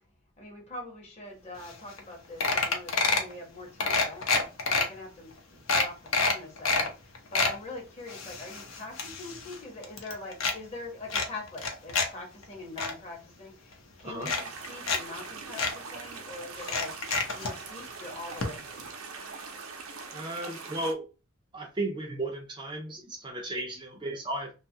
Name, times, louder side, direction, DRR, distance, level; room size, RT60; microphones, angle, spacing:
voice 1, 0.4-17.0 17.3-18.9, left 2 dB, 30° left, 0.9 m, -43 dB
sound 1, 1.7-1.8 2.0-2.1 2.4-3.3 3.8-4.8 5.3-5.4 5.7-6.9 7.1-7.6 8.1-9.6 9.8-10.6 11.1-12.1 12.4-12.9 13.7-13.8 14.2-15.0 15.2-15.3 15.6-15.7 16.6-17.5 18.4-18.5 18.8-18.9, left 4 dB, 80° left, 0.6 m, -27 dB
sound 2, 14.3-20.9, right 4 dB, 80° right, 0.6 m, -42 dB
voice 2, 20.1-21.1 21.5-24.5, right 1 dB, 20° right, 0.4 m, -35 dB
2.8 x 2.3 x 2.7 m
head